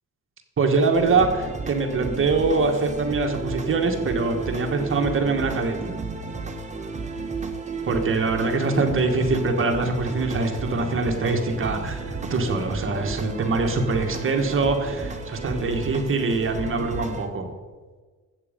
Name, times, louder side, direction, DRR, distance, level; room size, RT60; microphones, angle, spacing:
voice 1, 0.6-5.9 7.9-17.5, right 3 dB, 40° right, 4 dB, 1.6 m, -24 dB
sound 1, 0.7-17.3, right 4 dB, 20° right, 1.2 m, -33 dB
13.0 x 8.3 x 5.2 m, 1.4 s
cardioid pair, 135°, 32 cm